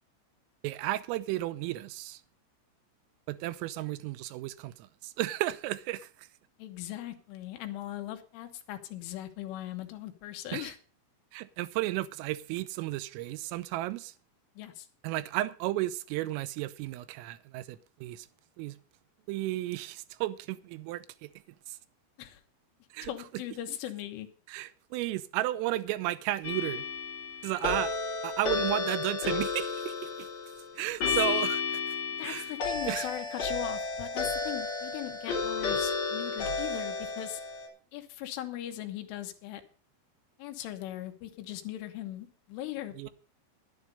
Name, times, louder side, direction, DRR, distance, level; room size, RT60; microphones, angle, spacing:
voice 1, 0.6-2.2 3.3-6.3 10.5-10.7 11.3-14.1 15.0-18.3 18.6-18.8 19.3-21.3 21.7-21.8 22.9-23.1 24.5-26.9 27.4-28.0 28.2-30.3 30.8-31.6 32.2-32.5 32.9-33.1 43.0-43.1, right 16 dB, 85° right, 3.3 m, -33 dB
voice 2, 6.6-10.8 14.6-14.9 22.2-22.4 23.0-24.3 31.2-31.5 32.2-37.4 37.9-39.6 40.4-43.1, left 13 dB, 75° left, 3.6 m, -39 dB
sound 1, 26.4-37.7, left 4 dB, 35° left, 4.2 m, -32 dB
11.5 x 11.0 x 5.3 m
omnidirectional pair, 5.8 m